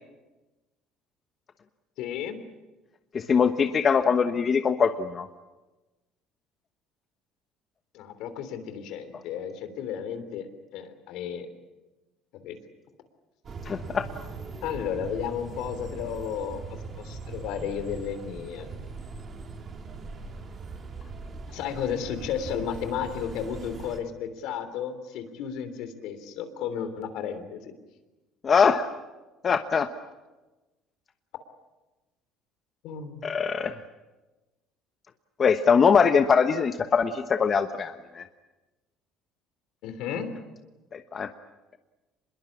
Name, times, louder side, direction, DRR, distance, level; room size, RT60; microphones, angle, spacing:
voice 1, 2.0-2.4 7.9-11.5 12.4-12.6 14.6-18.7 21.5-27.7 32.8-33.3 39.8-40.3, left 8 dB, 75° left, 10 dB, 3.3 m, -33 dB
voice 2, 3.1-5.3 13.7-14.1 28.4-28.9 29.4-29.9 33.2-33.8 35.4-38.3 40.9-41.3, left 6 dB, 35° left, 8 dB, 1.1 m, -22 dB
sound 1, 13.4-24.0, right 4 dB, 40° right, 3.5 m, -40 dB
25.5 x 21.5 x 8.6 m, 1.1 s
supercardioid pair, 100°, 0 cm